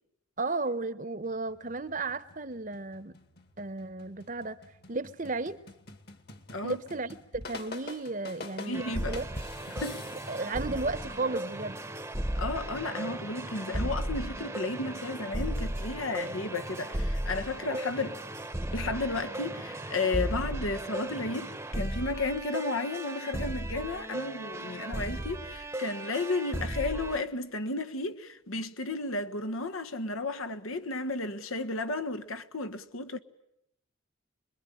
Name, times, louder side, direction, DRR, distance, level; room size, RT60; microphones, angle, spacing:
voice 1, 0.4-3.2 3.6-4.6 4.9-5.6 6.6-9.3 10.3-11.8, right 3 dB, 40° right, 1.0 m, -34 dB
sound 1, 1.2-10.6, left 2 dB, 50° left, 2.1 m, -47 dB
voice 2, 8.6-9.2 9.7-10.0 12.4-18.2 18.7-33.2, left 3 dB, 80° left, 1.4 m, -33 dB
sound 2, 8.7-27.2, right 1 dB, 10° right, 0.9 m, -36 dB
25.5 x 22.0 x 9.9 m
head